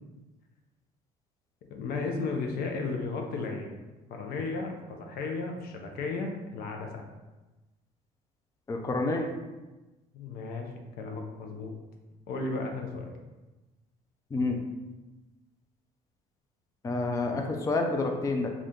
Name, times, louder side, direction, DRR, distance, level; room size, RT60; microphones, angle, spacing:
voice 1, 1.7-3.8 4.1-7.0 10.1-10.7 11.0-11.7 12.3-13.1, left 3 dB, 65° left, 3 dB, 0.6 m, -34 dB
voice 2, 8.7-9.3 14.3-14.6 16.8-18.5, left 3 dB, 20° left, 3 dB, 0.4 m, -28 dB
2.5 x 2.4 x 3.5 m, 1.1 s
supercardioid pair, 75°, 17 cm